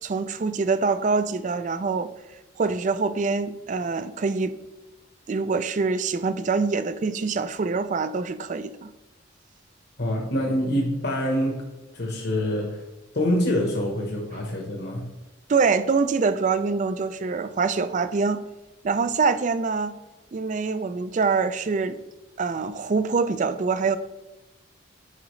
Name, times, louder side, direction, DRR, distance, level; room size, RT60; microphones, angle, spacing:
voice 1, 0.0-2.1 2.6-4.6 5.3-8.9 15.5-18.4 18.8-19.9 20.3-22.0 22.4-24.0, right 4 dB, 35° right, 13 dB, 0.3 m, -25 dB
voice 2, 10.0-11.6 11.9-12.8 13.1-15.1, equal, 55° left, -1 dB, 1.1 m, -25 dB
9.8 x 4.9 x 3.2 m, 1.1 s
head